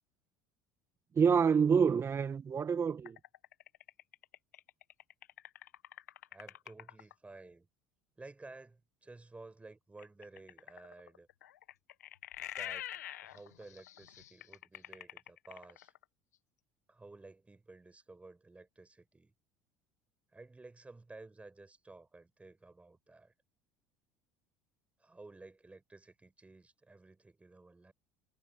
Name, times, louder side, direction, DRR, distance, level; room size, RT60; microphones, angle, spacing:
voice 1, 1.1-3.2, right 6 dB, 30° right, 1.5 m, -27 dB
sound 1, 3.0-7.1 10.0-16.0, left 12 dB, 85° left, 1.6 m, -47 dB
voice 2, 6.3-7.7 8.2-11.3 12.5-15.9 16.9-19.3 20.3-23.3 25.0-27.9, right 3 dB, 15° right, 6.5 m, -54 dB
hypercardioid pair, 70°, 9 cm